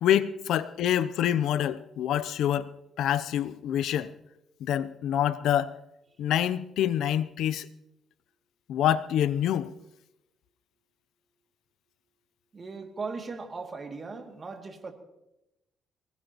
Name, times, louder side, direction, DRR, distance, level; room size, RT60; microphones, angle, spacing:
voice 1, 0.0-2.7 3.0-4.1 4.6-5.8 6.2-7.7 8.7-9.7, left 10 dB, 80° left, 0.6 m, -26 dB
voice 2, 12.5-14.9, right 4 dB, 35° right, 2.5 m, -38 dB
23.5 x 19.5 x 3.0 m
cardioid pair, 90°, 0 cm